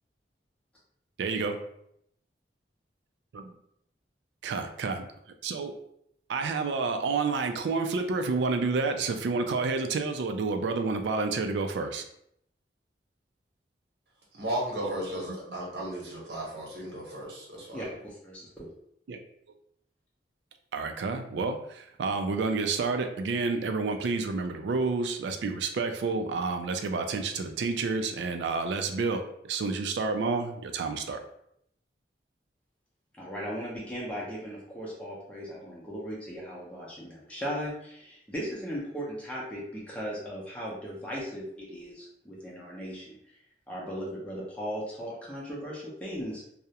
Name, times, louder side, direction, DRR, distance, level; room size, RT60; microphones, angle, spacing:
voice 1, 1.2-1.6 3.3-3.5 4.4-5.1 5.4-5.7 6.3-12.0 14.8-14.9 15.3-15.4 19.1-19.2 20.7-31.2, right 4 dB, 85° right, 6 dB, 0.3 m, -29 dB
voice 2, 14.3-17.8, right 1 dB, 65° right, -3 dB, 0.9 m, -35 dB
voice 3, 17.7-18.7 33.2-43.2 43.7-46.4, equal, 10° left, -6 dB, 0.5 m, -37 dB
2.3 x 2.0 x 2.8 m, 0.73 s
head